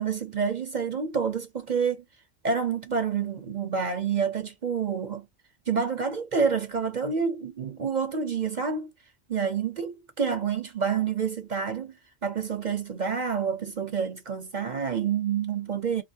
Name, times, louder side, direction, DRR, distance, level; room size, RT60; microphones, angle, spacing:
voice 1, 0.0-2.0 2.4-5.3 5.7-8.9 9.3-11.9 12.2-16.0, right 6 dB, 45° right, 0.7 m, -28 dB
3.5 x 2.9 x 2.7 m
omnidirectional pair, 1.1 m